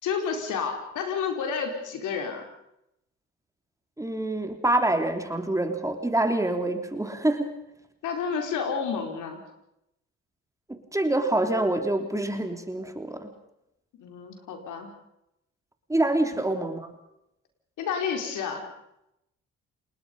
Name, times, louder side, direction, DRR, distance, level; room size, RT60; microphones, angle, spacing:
voice 1, 0.0-2.4 8.0-9.4 13.9-14.9 17.8-18.6, left 6 dB, 80° left, 4 dB, 4.8 m, -30 dB
voice 2, 4.0-7.6 10.7-13.3 15.9-16.9, right 1 dB, 10° right, 6 dB, 3.2 m, -26 dB
29.0 x 20.0 x 5.5 m, 0.82 s
cardioid pair, 90°, 30 cm